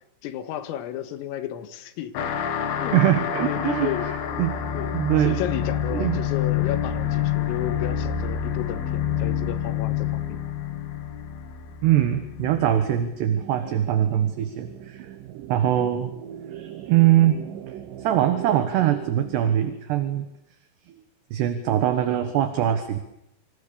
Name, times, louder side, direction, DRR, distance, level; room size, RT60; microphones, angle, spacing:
voice 1, 0.2-2.3 2.8-3.0 3.4-4.2 4.7-10.4 15.7-16.1, left 11 dB, 90° left, 10 dB, 4.2 m, -33 dB
sound 1, 2.1-13.1, left 8 dB, 60° left, 3.2 m, -28 dB
voice 2, 2.9-4.6 4.9-5.4 5.9-6.2 11.8-16.1 16.5-17.4 18.0-20.3 21.3-23.0, right 12 dB, 65° right, 9 dB, 3.1 m, -22 dB
sound 2, 13.1-19.6, right 11 dB, 90° right, 1.9 m, -40 dB
28.0 x 26.5 x 6.8 m, 0.82 s
omnidirectional pair, 5.8 m